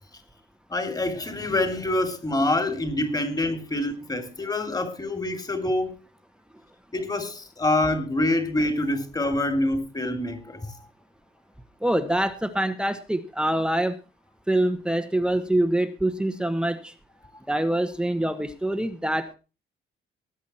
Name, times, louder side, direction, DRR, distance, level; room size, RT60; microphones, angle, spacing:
voice 1, 0.7-5.9 6.9-10.6, left 1 dB, 20° left, 3.0 m, -26 dB
voice 2, 11.8-14.0 14.5-16.9 17.5-19.4, right 1 dB, 5° right, 1.3 m, -25 dB
19.0 x 8.4 x 4.4 m
cardioid pair, 90°, 20 cm